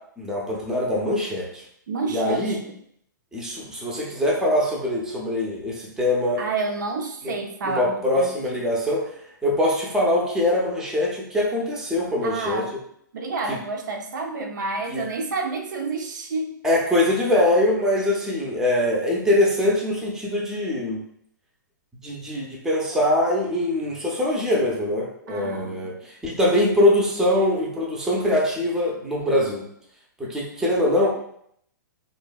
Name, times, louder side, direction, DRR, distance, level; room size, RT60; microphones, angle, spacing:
voice 1, 0.2-1.6 2.1-2.6 3.3-6.4 7.2-7.3 7.6-9.1 9.4-12.6 13.5-13.6 14.9-15.0 16.6-21.0 22.0-25.9 26.2-29.6 30.2-31.1, left 1 dB, 5° right, -3 dB, 0.5 m, -23 dB
voice 2, 1.9-2.8 6.4-8.3 12.2-12.7 13.1-16.5 25.3-26.0, right 3 dB, 65° right, 3 dB, 0.4 m, -29 dB
2.6 x 2.1 x 2.2 m, 0.69 s
hypercardioid pair, 125°, 11 cm